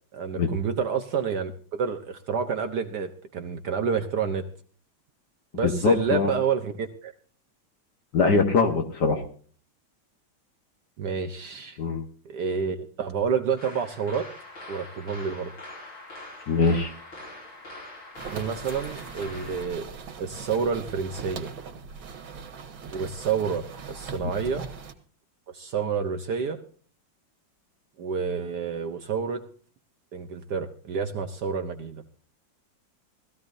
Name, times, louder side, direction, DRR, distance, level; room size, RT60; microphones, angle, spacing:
voice 1, 0.1-4.5 5.5-7.1 11.0-11.8 12.2-14.3 14.7-15.5 18.3-19.9 20.2-21.5 22.9-24.6 25.5-26.6 28.0-29.4 30.1-32.0, right 6 dB, 65° right, 6 dB, 1.4 m, -29 dB
voice 2, 5.6-6.3 8.1-9.2 11.8-12.0 16.5-16.9, left 4 dB, 60° left, 5 dB, 1.8 m, -22 dB
sound 1, 13.6-19.7, left 2 dB, 90° left, 7.5 m, -43 dB
sound 2, 18.1-24.9, right 5 dB, 90° right, 2.3 m, -40 dB
19.5 x 14.5 x 2.6 m, 0.43 s
omnidirectional pair, 2.1 m